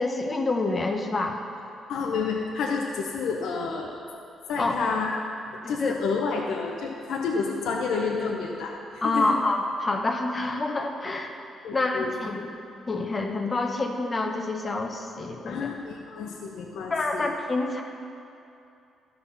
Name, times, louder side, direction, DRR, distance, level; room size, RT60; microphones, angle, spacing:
voice 1, 0.0-1.4 4.6-4.9 5.6-6.0 9.0-11.4 11.7-12.5 12.9-15.7 16.9-17.8, left 2 dB, 30° left, 2 dB, 0.9 m, -27 dB
voice 2, 1.9-3.9 4.5-5.2 5.5-9.4 11.6-12.1 15.5-17.3, left 5 dB, 80° left, 0 dB, 0.8 m, -29 dB
13.0 x 5.5 x 5.6 m, 2.7 s
cardioid pair, 90°, 0 cm